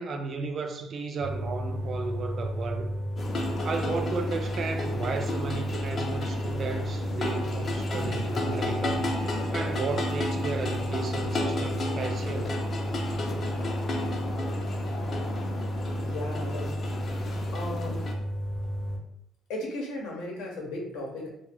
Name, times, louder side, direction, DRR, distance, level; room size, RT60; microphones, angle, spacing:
voice 1, 0.0-3.0 3.6-9.1 9.5-12.6, right 4 dB, 50° right, 0.4 m, -34 dB
sound 1, 1.2-19.0, equal, 90° right, 0.7 m, -32 dB
sound 2, 3.2-18.1, left 2 dB, 45° left, 0.5 m, -34 dB
voice 2, 15.9-16.7 17.5-18.1 19.5-21.3, left 1 dB, 90° left, 0.8 m, -35 dB
2.4 x 2.2 x 3.4 m
cardioid pair, 100°, 0 cm